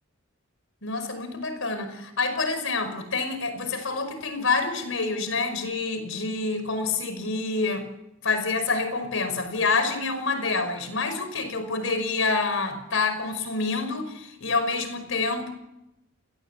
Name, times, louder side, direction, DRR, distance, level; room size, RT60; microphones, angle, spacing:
voice 1, 0.8-7.9 8.2-15.5, left 3 dB, 70° left, 9 dB, 5.6 m, -27 dB
30.0 x 21.0 x 8.4 m, 0.89 s
head